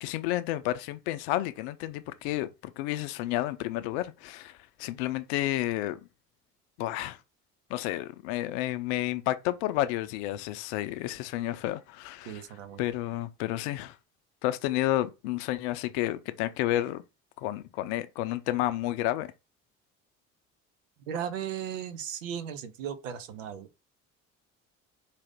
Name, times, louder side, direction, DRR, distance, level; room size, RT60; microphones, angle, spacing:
voice 1, 0.0-6.0 6.8-7.2 7.7-12.4 12.8-14.0 14.4-17.0 17.4-19.3, left 14 dB, 60° left, 0.6 m, -31 dB
voice 2, 12.2-12.8 21.1-23.7, right 8 dB, 70° right, 0.7 m, -36 dB
4.8 x 2.7 x 3.5 m
figure-of-eight pair, 55°, 40 cm